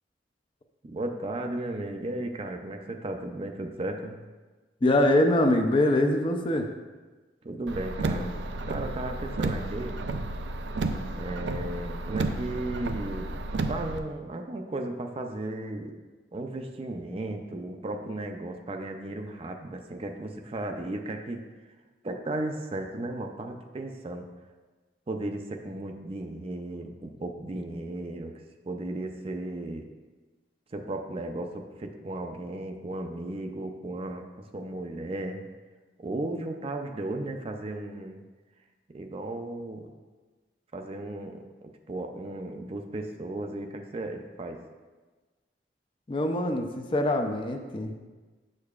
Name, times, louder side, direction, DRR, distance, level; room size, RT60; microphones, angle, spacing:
voice 1, 0.8-4.2 7.4-8.4 8.7-10.0 11.2-13.3 13.7-15.9 16.3-21.4 22.0-24.3 25.1-28.3 28.6-29.8 30.7-34.2 34.5-35.4 36.0-38.2 38.9-39.9 40.7-44.6, right 2 dB, 35° right, 4 dB, 0.4 m, -35 dB
voice 2, 4.8-6.7 46.1-47.9, left 1 dB, 30° left, 4 dB, 0.5 m, -24 dB
Car, 7.7-14.0, right 2 dB, 90° right, 0.4 m, -32 dB
7.7 x 6.6 x 2.4 m, 1.3 s
head